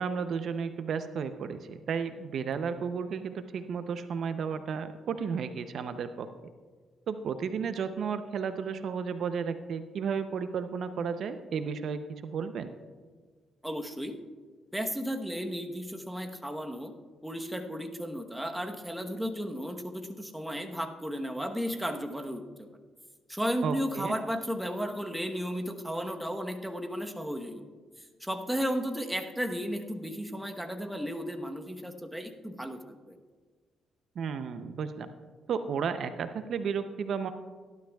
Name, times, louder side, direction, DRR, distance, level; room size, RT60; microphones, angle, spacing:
voice 1, 0.0-6.3 7.1-12.7 23.6-24.1 34.2-35.1 35.5-37.3, right 6 dB, 65° right, 10 dB, 0.6 m, -33 dB
voice 2, 13.6-14.2 14.7-16.9 17.2-22.7 23.3-27.6 28.2-33.2, equal, 5° right, 4 dB, 1.0 m, -34 dB
18.0 x 11.5 x 2.3 m, 1.5 s
cardioid pair, 90°, 0 cm